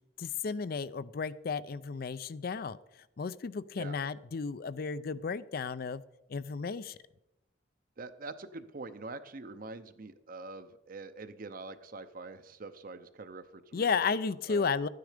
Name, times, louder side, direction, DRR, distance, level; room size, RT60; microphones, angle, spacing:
voice 1, 0.2-2.8 3.2-6.0 6.3-7.0 13.7-14.9, left 5 dB, 50° left, 16 dB, 0.4 m, -33 dB
voice 2, 8.0-13.9 14.5-14.6, right 3 dB, 50° right, 11 dB, 0.7 m, -44 dB
12.0 x 9.4 x 5.1 m, 0.90 s
head